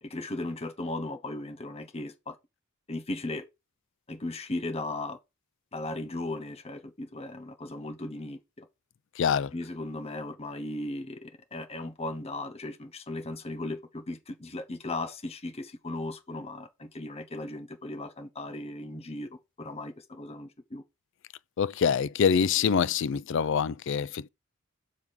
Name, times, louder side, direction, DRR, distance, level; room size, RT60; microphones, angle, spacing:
voice 1, 0.0-2.4 2.9-3.5 4.1-5.2 5.7-8.7 9.5-20.8, left 2 dB, 30° left, 0.9 m, -37 dB
voice 2, 9.2-9.5 21.6-24.3, left 7 dB, 55° left, 0.4 m, -25 dB
7.3 x 3.6 x 6.2 m
head